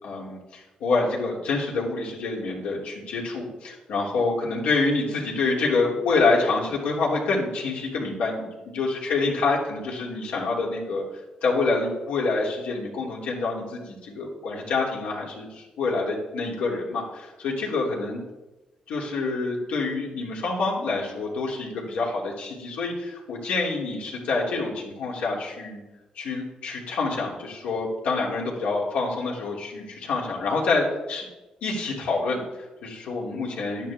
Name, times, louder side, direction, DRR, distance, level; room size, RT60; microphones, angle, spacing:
voice 1, 0.0-8.5 8.7-11.0 11.4-18.2 18.9-25.8 26.2-31.3 31.6-33.9, left 3 dB, 90° left, -3 dB, 3.1 m, -27 dB
11.5 x 10.5 x 3.7 m, 1.1 s
cardioid pair, 90°, 2 cm